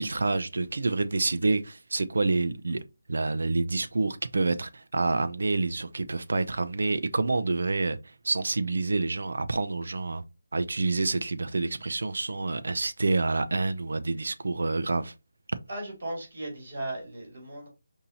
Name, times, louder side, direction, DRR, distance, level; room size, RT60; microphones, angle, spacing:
voice 1, 0.0-2.8 3.1-10.2 10.5-15.1, right 3 dB, 70° right, 0.5 m, -28 dB
voice 2, 15.7-17.7, right 1 dB, 45° right, 2.5 m, -36 dB
5.3 x 2.7 x 2.8 m
figure-of-eight pair, 170°, 0 cm